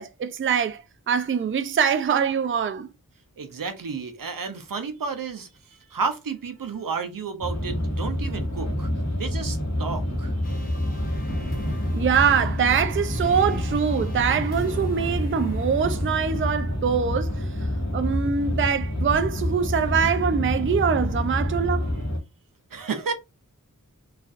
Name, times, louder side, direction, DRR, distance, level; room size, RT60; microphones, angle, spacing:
voice 1, 0.0-2.9 11.9-17.5 17.9-21.9, right 7 dB, 40° right, 0.4 m, -23 dB
voice 2, 3.4-8.9 9.2-10.4 22.7-23.1, right 5 dB, 80° right, 0.6 m, -32 dB
sound 1, 7.4-22.2, left 1 dB, 55° left, 1.2 m, -27 dB
sound 2, 10.4-16.1, left 1 dB, 25° left, 1.0 m, -39 dB
3.1 x 2.3 x 2.5 m
wide cardioid pair, 50°, 33 cm